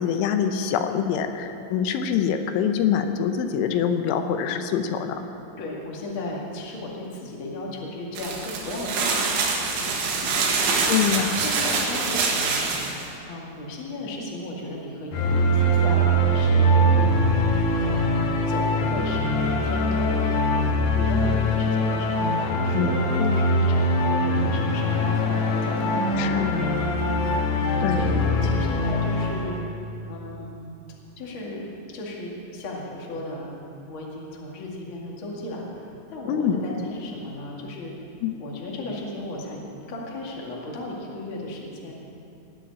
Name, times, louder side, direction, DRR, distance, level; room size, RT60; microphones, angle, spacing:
voice 1, 0.0-5.2 10.9-11.5 22.7-23.4 26.2-26.6 27.8-28.0 36.3-36.6 38.2-38.3, left 8 dB, 85° left, 7 dB, 3.2 m, -25 dB
voice 2, 5.6-9.2 9.7-11.0 11.4-12.8 13.3-29.6 30.1-30.8 31.2-31.6 31.9-33.5 33.9-37.9 38.4-39.6 39.9-41.9, left 1 dB, 40° left, -3 dB, 2.0 m, -35 dB
sound 1, 8.2-13.0, right 4 dB, 80° right, 4.1 m, -25 dB
sound 2, 15.1-29.6, equal, 70° left, 3.5 m, -22 dB
19.0 x 7.6 x 8.7 m, 2.7 s
omnidirectional pair, 5.4 m